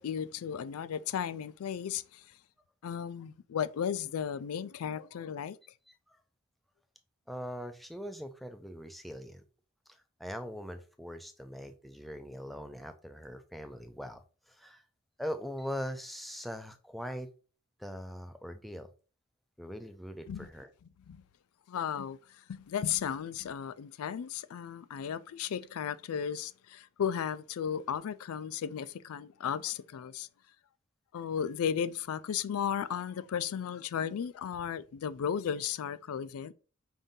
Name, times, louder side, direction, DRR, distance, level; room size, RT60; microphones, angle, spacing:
voice 1, 0.0-2.3 2.8-5.6 20.3-20.5 21.1-21.2 21.7-30.3 31.1-36.5, left 8 dB, 80° left, 0.3 m, -35 dB
voice 2, 5.9-6.2 7.3-9.4 9.9-14.8 15.2-17.3 17.8-18.9 19.6-20.7, equal, ahead, 0.4 m, -41 dB
5.3 x 2.7 x 3.6 m
head